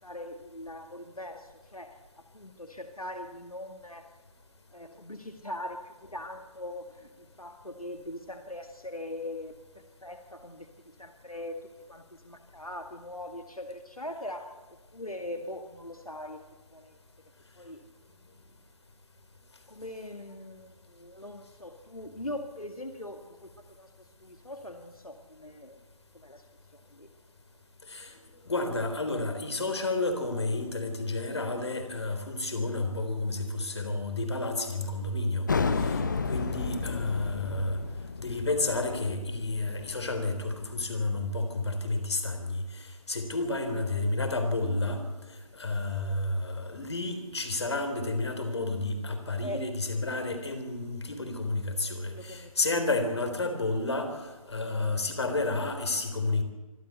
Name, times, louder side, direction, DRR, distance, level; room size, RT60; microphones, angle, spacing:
voice 1, 0.0-2.0 2.3-4.1 4.7-16.4 16.7-17.0 17.6-17.8 19.7-23.5 23.8-25.8 26.1-26.5 26.7-27.1 43.7-43.9 49.4-49.8 52.1-52.6, left 1 dB, 90° left, 6 dB, 2.0 m, -41 dB
voice 2, 27.9-28.2 28.5-35.5 35.8-37.8 38.2-45.0 45.5-54.2 54.5-56.4, left 2 dB, 50° left, 8 dB, 3.7 m, -31 dB
sound 1, 35.5-40.8, left 4 dB, 35° left, 1.1 m, -32 dB
25.0 x 13.0 x 8.2 m, 1.3 s
figure-of-eight pair, 155°, 18 cm